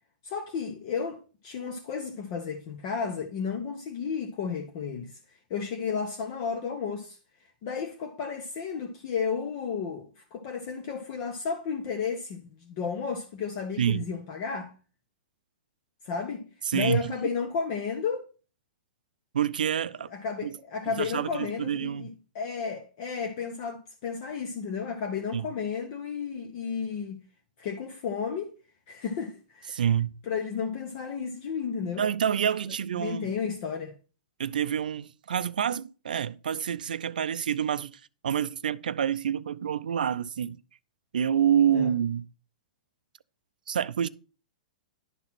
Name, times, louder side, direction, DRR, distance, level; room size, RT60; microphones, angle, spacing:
voice 1, 0.2-14.7 16.0-18.3 20.1-22.1 22.3-27.2 27.6-28.5 28.9-29.8 30.2-32.0 33.0-33.9 41.7-41.9, left 6 dB, 45° left, 1.1 m, -33 dB
voice 2, 16.7-17.1 19.3-20.1 20.4-20.5 21.0-22.1 25.3-25.5 29.7-30.1 32.0-33.3 34.4-40.6 41.1-42.3 43.7-44.1, right 8 dB, 90° right, 0.4 m, -27 dB
11.0 x 4.1 x 5.9 m
hypercardioid pair, 140°, 5 cm